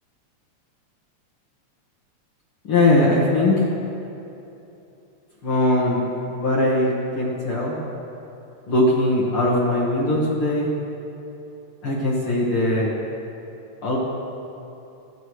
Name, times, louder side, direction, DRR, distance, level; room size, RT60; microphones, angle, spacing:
voice 1, 2.7-3.6 5.4-7.8 8.7-10.7 11.8-12.9 13.8-14.0, left 1 dB, 50° left, -5 dB, 2.2 m, -20 dB
27.0 x 9.2 x 3.2 m, 2.9 s
omnidirectional pair, 3.4 m